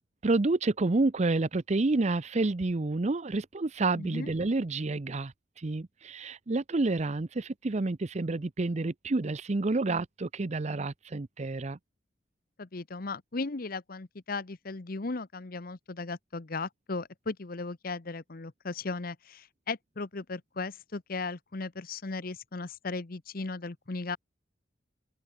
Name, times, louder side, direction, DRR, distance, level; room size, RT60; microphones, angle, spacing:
voice 1, 0.2-11.8, right 2 dB, 40° right, 0.6 m, -29 dB
voice 2, 3.9-4.3 12.6-24.2, left 3 dB, 55° left, 1.0 m, -36 dB
head